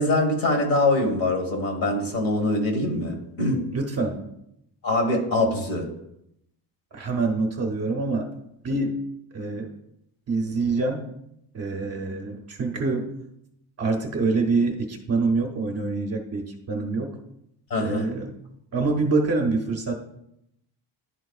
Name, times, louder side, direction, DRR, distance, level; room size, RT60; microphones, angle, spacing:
voice 1, 0.0-3.6 4.8-5.9 17.7-18.1, left 2 dB, 50° left, 3 dB, 1.5 m, -23 dB
voice 2, 3.7-4.3 6.9-8.3 8.6-9.0 9.3-9.7 10.3-11.1 11.5-13.1 13.8-17.2 17.8-18.3 18.7-19.9, right 3 dB, 35° right, 2 dB, 0.7 m, -26 dB
11.0 x 4.5 x 2.4 m, 0.80 s
cardioid pair, 180°, 44 cm